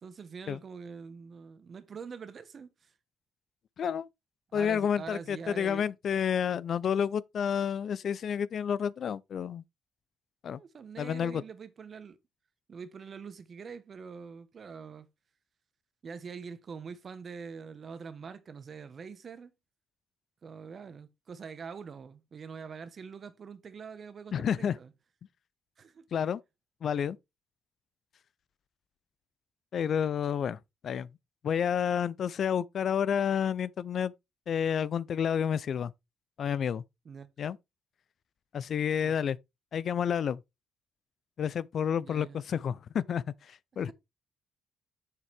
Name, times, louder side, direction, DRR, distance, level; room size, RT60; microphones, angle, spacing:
voice 1, 0.0-2.9 4.5-5.9 10.5-12.2 12.7-15.1 16.0-19.5 20.4-24.9 25.8-26.1 37.0-37.3 39.0-39.1 42.0-42.4, right 5 dB, 45° right, 1.1 m, -44 dB
voice 2, 3.8-4.1 4.5-9.6 10.4-10.6 11.0-11.4 24.3-24.8 26.1-26.4 26.8-27.2 29.7-31.1 31.4-34.1 34.5-35.9 36.4-36.8 37.4-37.6 38.5-39.4 39.7-40.4 41.4-43.9, left 8 dB, 60° left, 0.4 m, -30 dB
7.4 x 6.7 x 3.4 m
cardioid pair, 90°, 0 cm